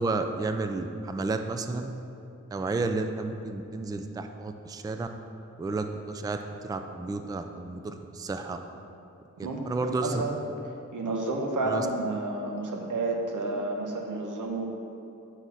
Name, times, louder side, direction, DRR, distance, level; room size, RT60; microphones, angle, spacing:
voice 1, 0.0-1.9 2.5-5.1 5.6-6.4 6.6-8.6 9.4-10.2 11.7-11.9, right 3 dB, 15° right, 6 dB, 0.3 m, -31 dB
voice 2, 9.4-10.4 10.9-14.7, right 2 dB, 85° right, 1 dB, 1.0 m, -30 dB
8.2 x 4.0 x 5.6 m, 2.7 s
wide cardioid pair, 105°, 30 cm